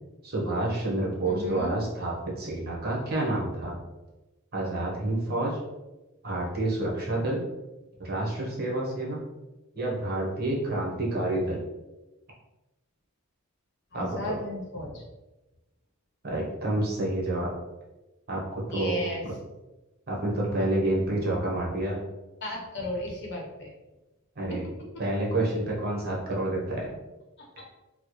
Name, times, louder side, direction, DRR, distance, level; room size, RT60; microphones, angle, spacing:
voice 1, 0.2-3.8 4.5-5.6 6.2-7.4 8.0-9.2 9.7-11.6 13.9-14.3 16.2-17.5 18.3-19.1 20.1-22.0 24.4-24.7 25.0-26.9 27.6-27.7, right 1 dB, 45° right, -3 dB, 0.9 m, -29 dB
voice 2, 1.2-1.8 13.9-15.0 18.7-19.2 22.4-23.7 24.5-24.7 27.4-27.5, left 1 dB, 55° left, -2 dB, 0.8 m, -34 dB
4.3 x 2.1 x 3.0 m, 1.1 s
head